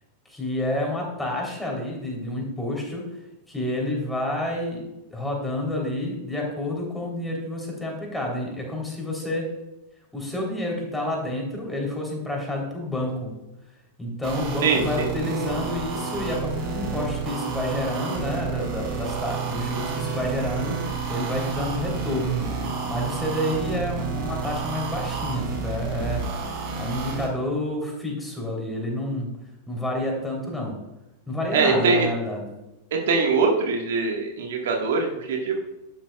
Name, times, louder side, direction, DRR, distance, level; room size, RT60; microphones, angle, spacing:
voice 1, 0.3-3.1 3.5-4.8 5.1-9.5 10.1-13.3 14.0-22.5 22.9-29.3 29.7-30.8 31.3-32.5, left 1 dB, 5° left, -1 dB, 3.6 m, -29 dB
sound 1, 14.2-27.3, right 5 dB, 40° right, 3.8 m, -30 dB
voice 2, 14.6-15.1 31.5-32.1 32.9-35.6, right 4 dB, 60° right, 1 dB, 1.7 m, -22 dB
12.0 x 11.0 x 2.4 m, 0.97 s
figure-of-eight pair, 90°, 0 cm